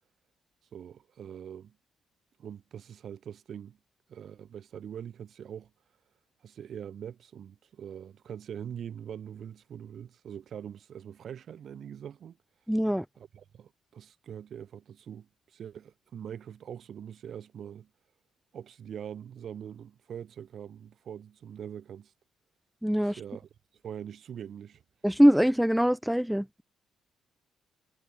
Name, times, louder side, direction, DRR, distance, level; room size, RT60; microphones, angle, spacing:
voice 1, 0.7-1.8 2.4-3.8 4.1-5.7 6.4-12.4 13.2-17.9 18.5-22.1 23.0-23.5 23.8-24.8, right 9 dB, 60° right, 4.6 m, -43 dB
voice 2, 12.7-13.0 22.8-23.2 25.0-26.6, equal, ahead, 0.4 m, -23 dB
cardioid pair, 90°, 0 cm